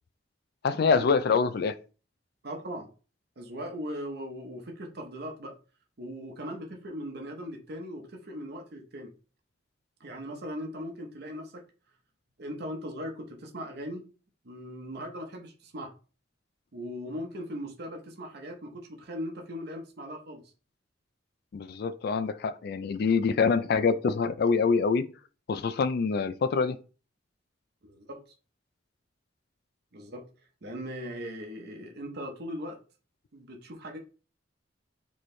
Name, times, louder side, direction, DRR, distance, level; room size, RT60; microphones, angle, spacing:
voice 1, 0.6-1.7 21.5-25.1 25.5-26.8, left 5 dB, 55° left, 0.4 m, -25 dB
voice 2, 2.4-2.9 3.4-5.6 6.0-9.1 10.0-11.6 12.4-14.1 14.4-15.9 16.7-20.5 27.8-28.2 29.9-30.3 30.6-32.8 33.3-34.0, equal, 60° right, 0.8 m, -39 dB
4.3 x 3.1 x 3.2 m
head